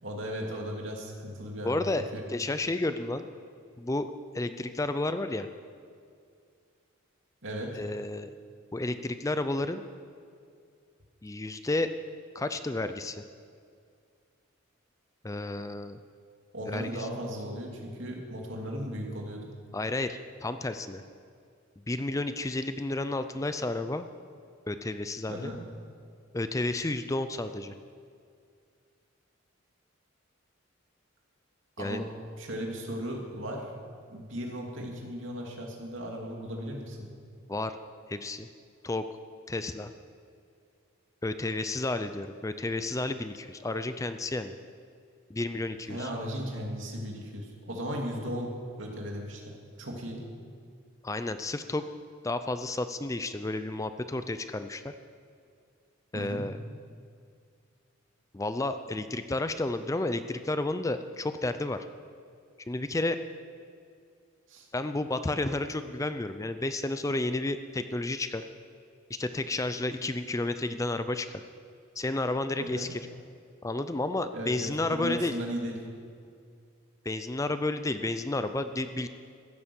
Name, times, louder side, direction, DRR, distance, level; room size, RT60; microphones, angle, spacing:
voice 1, 0.0-1.9 2.1-2.2 7.4-7.8 16.5-19.5 25.3-25.6 31.8-32.0 32.4-33.6 34.1-37.1 45.9-48.5 48.8-50.2 56.1-56.5 64.5-64.7 72.6-72.9 74.3-75.8, equal, 70° right, 0 dB, 2.7 m, -36 dB
voice 2, 1.6-3.3 3.8-5.5 7.7-8.3 8.7-9.8 11.2-11.9 12.3-13.2 15.2-16.0 16.7-17.1 19.7-21.0 21.9-24.1 24.7-25.5 26.3-27.7 31.8-32.0 37.5-37.7 38.1-38.5 38.8-39.1 39.5-39.9 41.2-44.5 45.3-46.1 51.0-51.9 52.2-54.9 56.1-56.6 58.3-61.9 62.7-63.2 64.7-68.5 69.1-71.4 72.0-73.0 73.6-75.3 77.1-79.1, left 2 dB, 15° left, 10 dB, 0.4 m, -31 dB
15.0 x 11.0 x 7.1 m, 2.2 s
head